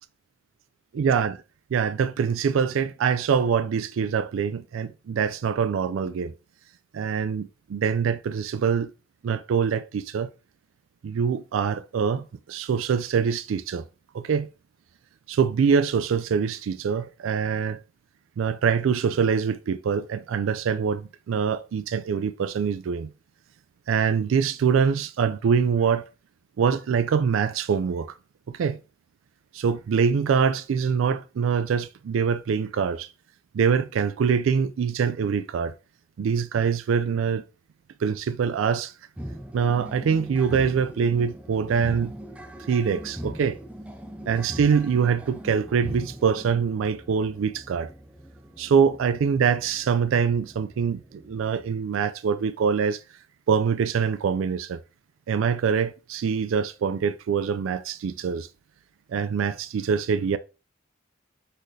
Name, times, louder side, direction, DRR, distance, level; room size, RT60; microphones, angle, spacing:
voice 1, 0.9-1.4 1.7-6.3 6.9-8.9 9.2-10.3 11.0-13.9 14.1-14.5 15.3-17.8 18.4-23.1 23.9-26.0 26.6-28.1 28.5-28.8 29.5-33.1 33.5-35.7 36.2-37.4 38.0-38.9 39.5-42.1 42.7-43.6 44.3-47.9 48.6-53.0 53.5-54.8 55.3-58.5 59.1-60.4, right 6 dB, 90° right, 0.3 m, -24 dB
sound 1, 39.2-51.8, equal, 5° right, 0.4 m, -40 dB
4.1 x 4.0 x 3.2 m
head